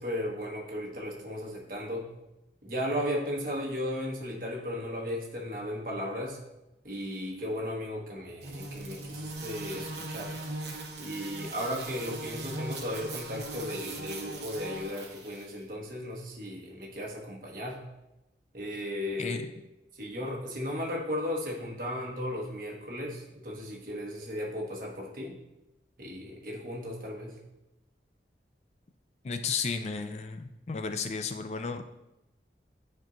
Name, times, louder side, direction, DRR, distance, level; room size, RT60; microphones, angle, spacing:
voice 1, 0.0-2.1 2.6-6.4 6.8-10.3 11.0-17.8 18.5-19.4 20.0-25.4 26.0-27.4, left 1 dB, 50° right, -1 dB, 1.4 m, -35 dB
sound 1, 8.4-15.5, right 2 dB, 75° right, 1.1 m, -39 dB
voice 2, 29.2-31.8, left 5 dB, 35° left, 7 dB, 0.3 m, -33 dB
10.0 x 4.5 x 2.6 m, 0.92 s
head